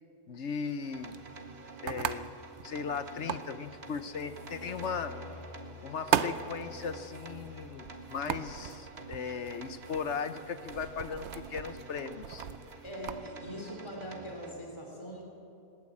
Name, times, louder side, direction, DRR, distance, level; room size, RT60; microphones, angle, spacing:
voice 1, 0.3-1.1 1.8-2.3 2.6-5.1 5.8-12.5, left 6 dB, 55° left, 11 dB, 0.9 m, -37 dB
sound 1, 0.7-13.2, right 9 dB, 60° right, 0.8 m, -39 dB
sound 2, 0.8-14.5, right 3 dB, 40° right, 1.8 m, -48 dB
sound 3, 3.5-8.1, left 4 dB, 75° left, 3.6 m, -49 dB
voice 2, 12.8-15.2, equal, 15° left, 0 dB, 3.7 m, -42 dB
20.5 x 19.5 x 8.5 m, 2.7 s
omnidirectional pair, 1.8 m